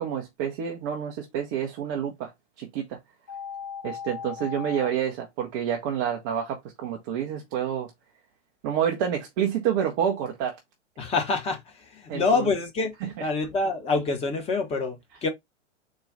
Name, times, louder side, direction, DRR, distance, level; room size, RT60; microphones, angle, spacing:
voice 1, 0.0-2.3 2.6-3.0 3.8-7.9 8.6-10.6 12.1-12.5 13.0-13.3, right 9 dB, 20° right, 0.4 m, -28 dB
sound 1, 3.3-4.9, left 7 dB, 35° left, 1.3 m, -37 dB
voice 2, 11.0-12.9 13.2-15.3, left 3 dB, 15° left, 0.8 m, -26 dB
4.0 x 2.2 x 3.7 m
figure-of-eight pair, 110°, 37 cm